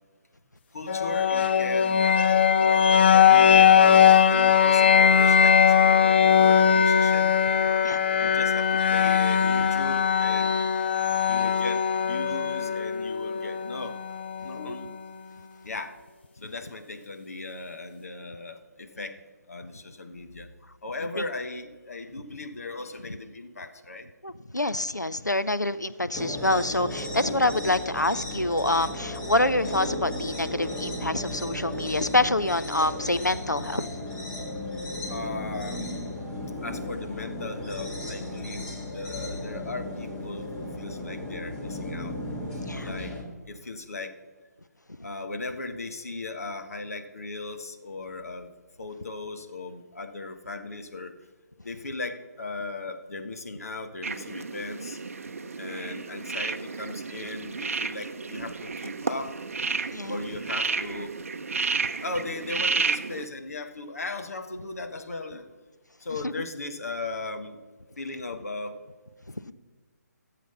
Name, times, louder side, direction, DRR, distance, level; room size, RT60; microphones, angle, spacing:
voice 1, 0.7-2.1 3.0-7.3 8.2-10.6 11.3-14.0 14.4-14.9 15.6-15.9 16.4-19.2 19.5-20.5 20.8-24.1 35.1-36.0 36.6-42.1 42.8-43.1 43.5-44.1 45.0-48.5 48.8-51.1 51.6-55.0 55.6-59.3 60.1-61.1 62.0-65.5 66.0-67.6 68.0-68.8 69.4-69.5, left 3 dB, 55° left, 6 dB, 1.4 m, -37 dB
sound 1, 0.9-14.8, left 8 dB, 40° left, 0.6 m, -20 dB
voice 2, 24.2-33.9 42.7-42.9 59.9-60.2 66.2-66.3, left 2 dB, 90° left, 13 dB, 0.6 m, -26 dB
sound 2, 26.1-43.2, left 1 dB, 10° left, 1.7 m, -35 dB
sound 3, 54.0-63.3, right 4 dB, 50° right, 0.7 m, -32 dB
15.5 x 7.5 x 5.6 m, 1.3 s
figure-of-eight pair, 140°, 9 cm